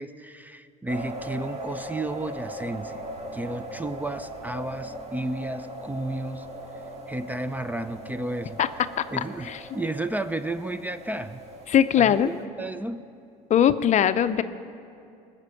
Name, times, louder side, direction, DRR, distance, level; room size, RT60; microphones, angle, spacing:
voice 1, 0.0-3.0 3.3-6.5 7.1-8.6 9.1-11.4 12.0-13.0, right 1 dB, 10° right, 12 dB, 0.5 m, -32 dB
sound 1, 0.9-12.4, right 1 dB, 35° right, 2.0 m, -39 dB
voice 2, 11.7-12.3 13.5-14.4, left 9 dB, 40° left, 12 dB, 0.6 m, -20 dB
19.5 x 6.7 x 8.3 m, 2.5 s
supercardioid pair, 95°, 18 cm